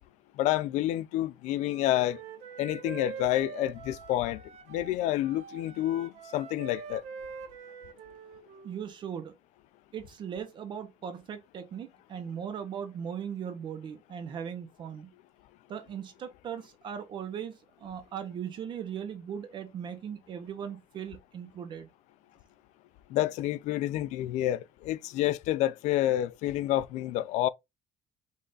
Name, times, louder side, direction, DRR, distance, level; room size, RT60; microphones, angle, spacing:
voice 1, 0.4-2.2 2.6-4.4 4.7-7.0 23.1-27.5, left 14 dB, 65° left, 0.4 m, -29 dB
Wind instrument woodwind instrument, 1.5-4.9 5.2-8.8, right 6 dB, 65° right, 0.9 m, -44 dB
voice 2, 8.6-9.3 9.9-15.1 15.7-21.9, right 8 dB, 40° right, 0.7 m, -38 dB
5.4 x 2.4 x 3.8 m
cardioid pair, 175°, 13 cm